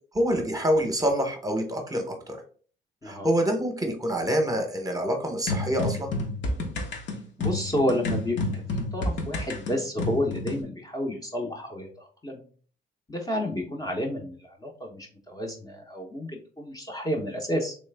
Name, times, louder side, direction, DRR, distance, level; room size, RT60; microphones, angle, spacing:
voice 1, 0.1-2.4 3.0-6.1, equal, 15° right, 3 dB, 0.9 m, -26 dB
sound 1, 5.5-10.6, left 2 dB, 70° left, 1.0 m, -30 dB
voice 2, 7.4-8.4 8.7-12.4 13.1-17.7, left 1 dB, 20° left, 0 dB, 0.7 m, -30 dB
3.2 x 3.1 x 3.3 m, 0.43 s
cardioid pair, 90°, 20 cm